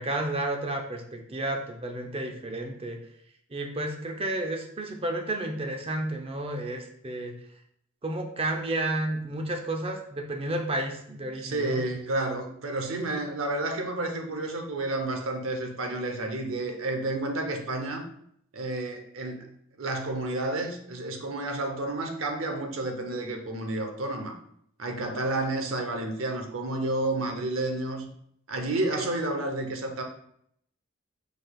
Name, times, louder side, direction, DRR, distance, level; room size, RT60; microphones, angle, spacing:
voice 1, 0.0-3.0 3.5-7.4 8.0-11.8, right 1 dB, 25° right, 4 dB, 0.5 m, -31 dB
voice 2, 11.4-18.1 18.5-19.5 19.8-24.4 24.8-28.1 28.5-30.0, right 2 dB, 75° right, 4 dB, 0.7 m, -30 dB
5.1 x 4.0 x 2.3 m, 0.70 s
head